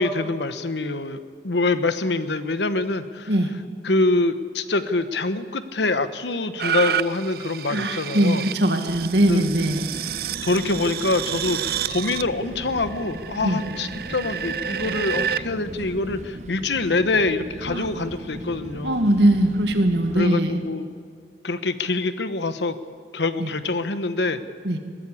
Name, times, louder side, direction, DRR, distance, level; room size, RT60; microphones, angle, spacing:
voice 1, 0.0-3.3 3.8-8.4 9.3-9.5 10.4-19.0 20.1-20.9 21.4-22.8 23.1-24.4, left 2 dB, 80° left, 11 dB, 1.1 m, -25 dB
sound 1, 6.6-15.4 16.0-16.1, right 9 dB, 55° right, 0.5 m, -30 dB
voice 2, 7.7-9.9 13.4-13.6 17.7-17.9 18.8-20.6 23.4-23.5 24.6-24.8, right 1 dB, 75° right, 6 dB, 2.0 m, -21 dB
sound 2, 8.9-20.3, right 1 dB, 40° right, 1.1 m, -38 dB
sound 3, 13.7-19.1, right 1 dB, 10° right, 2.6 m, -45 dB
21.0 x 15.0 x 8.4 m, 2.2 s
head